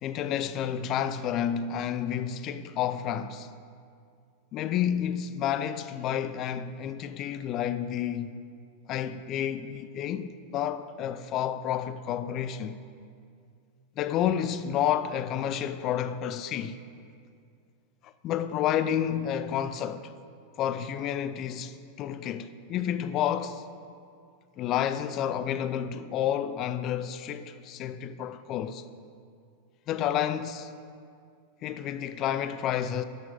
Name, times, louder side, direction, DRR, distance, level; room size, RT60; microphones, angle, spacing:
voice 1, 0.0-3.5 4.5-8.3 8.9-12.8 14.0-16.8 18.0-20.1 20.6-23.7 24.6-28.8 29.9-30.7 31.6-33.0, left 9 dB, 35° left, 0.4 m, -30 dB
12.5 x 6.2 x 5.2 m
figure-of-eight pair, 90°, 0 cm